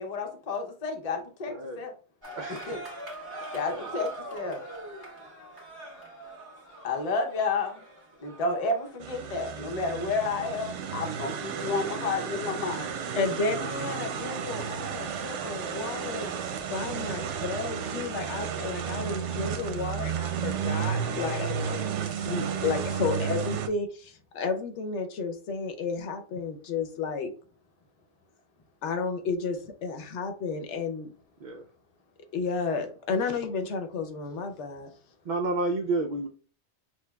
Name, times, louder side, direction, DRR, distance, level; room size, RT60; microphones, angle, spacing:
voice 1, 0.0-1.9 2.7-2.8 3.5-4.6 6.8-7.8 8.2-12.9, left 3 dB, 40° left, 3 dB, 0.7 m, -31 dB
voice 2, 1.5-1.9 2.4-2.9 3.6-3.9 13.9-14.9 31.4-31.7 35.2-36.3, right 2 dB, 55° right, 3 dB, 0.5 m, -32 dB
sound 1, 2.2-19.1, right 1 dB, 20° right, 1.4 m, -46 dB
sound 2, 9.0-23.7, right 7 dB, 85° right, 0.9 m, -33 dB
voice 3, 13.2-16.3 16.7-27.3 28.8-31.1 32.3-34.9, left 4 dB, 80° left, 6 dB, 1.0 m, -32 dB
6.1 x 2.3 x 2.2 m, 0.40 s
omnidirectional pair, 1.2 m